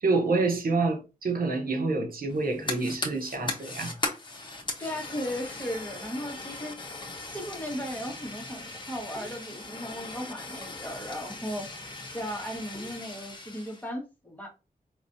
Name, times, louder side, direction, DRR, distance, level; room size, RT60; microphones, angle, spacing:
voice 1, 0.0-4.0, right 3 dB, 80° right, 1.0 m, -27 dB
Fire, 2.3-13.8, left 2 dB, 30° left, 1.1 m, -38 dB
voice 2, 4.8-6.7 7.1-11.7 12.0-14.5, equal, 10° left, 1.6 m, -36 dB
4.9 x 3.1 x 2.7 m
wide cardioid pair, 85°, 15 cm